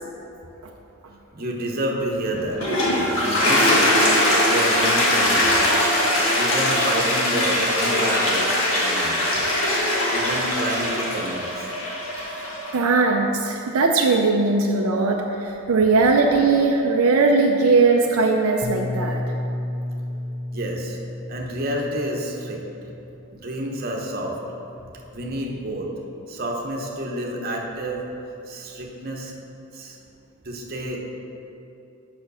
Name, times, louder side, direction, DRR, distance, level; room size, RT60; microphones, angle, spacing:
voice 1, 1.3-2.6 3.1-4.0 4.4-5.5 6.3-9.3 10.1-11.7 20.5-21.0 21.3-22.6 23.3-24.4 25.1-25.9 26.3-28.0 28.5-29.3 29.7-30.0 30.4-31.0, right 1 dB, 40° right, 0 dB, 0.9 m, -29 dB
Toilet flush, 2.4-12.7, left 1 dB, 60° left, 1.8 m, -21 dB
voice 2, 12.7-19.2, right 3 dB, 75° right, 1 dB, 0.5 m, -19 dB
Bass guitar, 18.6-23.1 23.9-24.9, left 1 dB, 45° left, 0.6 m, -32 dB
6.9 x 6.0 x 5.5 m, 2.9 s
head